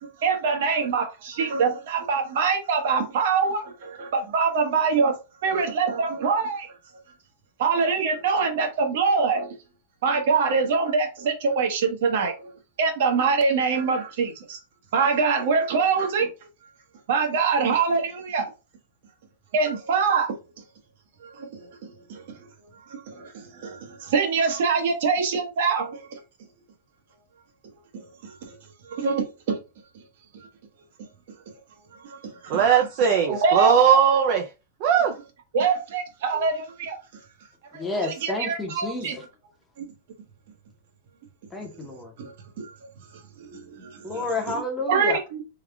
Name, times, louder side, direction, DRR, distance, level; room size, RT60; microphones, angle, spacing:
voice 1, 0.2-5.1 5.4-6.7 7.6-9.5 10.0-12.5 12.8-14.6 14.9-16.3 17.1-18.4 19.5-20.3 21.2-22.4 22.9-26.2 27.9-28.5 28.9-29.6 32.0-32.6 33.3-33.8 35.5-37.0 37.7-39.1 39.8-39.9 42.2-42.3 42.6-42.7 43.4-44.2 44.9-45.4, right 5 dB, 60° right, 1.0 m, -24 dB
voice 2, 32.5-34.5 34.8-35.2, right 7 dB, 40° right, 0.4 m, -19 dB
voice 3, 37.8-39.2 41.5-42.1 44.0-45.2, left 2 dB, 10° left, 0.8 m, -30 dB
3.5 x 2.3 x 3.4 m
supercardioid pair, 165°, 0 cm